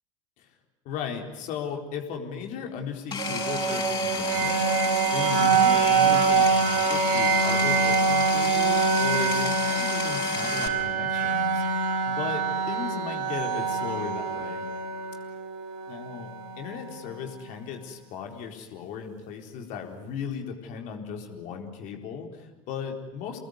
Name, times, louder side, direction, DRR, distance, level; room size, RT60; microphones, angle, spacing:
voice 1, 0.8-14.7 15.9-16.3 16.6-23.4, left 7 dB, 45° left, 3 dB, 4.2 m, -36 dB
Power tool, 3.1-10.7, left 5 dB, 25° left, 7.5 m, -32 dB
sound 1, 3.2-17.1, right 5 dB, 50° right, 5.6 m, -25 dB
29.5 x 20.0 x 9.6 m, 1.1 s
figure-of-eight pair, 70°, 18 cm